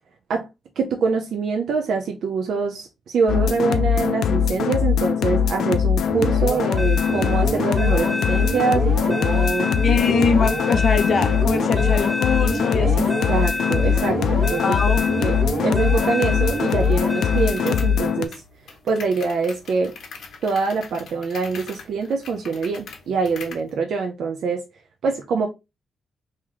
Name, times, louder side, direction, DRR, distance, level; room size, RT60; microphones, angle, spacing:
voice 1, 0.8-9.7 12.8-15.3 15.6-18.4 18.8-19.9 20.4-24.6 25.0-25.5, right 4 dB, 75° right, 0.6 m, -24 dB
sound 1, 3.3-18.3, left 7 dB, 85° left, 0.4 m, -21 dB
sound 2, 6.1-18.2, right 1 dB, 20° right, 1.4 m, -28 dB
voice 2, 9.8-13.1 14.6-15.0, left 5 dB, 50° left, 0.7 m, -22 dB
sound 3, 16.6-23.7, left 5 dB, 70° left, 1.0 m, -42 dB
3.1 x 3.0 x 3.7 m
wide cardioid pair, 145°, 0 cm